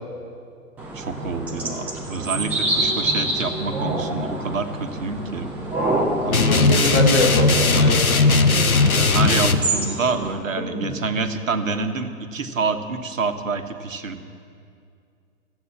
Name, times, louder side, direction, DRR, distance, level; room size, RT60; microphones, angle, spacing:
sound 1, 0.8-10.3, right 1 dB, 5° right, 0.5 m, -27 dB
voice 1, 0.9-5.5 6.2-7.2 8.9-14.2, right 4 dB, 65° right, 7 dB, 1.2 m, -27 dB
sound 2, 6.3-9.6, left 3 dB, 85° left, 0.9 m, -17 dB
voice 2, 6.3-8.2 10.7-10.9, left 2 dB, 40° left, 0 dB, 2.4 m, -23 dB
13.5 x 8.4 x 8.6 m, 2.3 s
figure-of-eight pair, 115°, 42 cm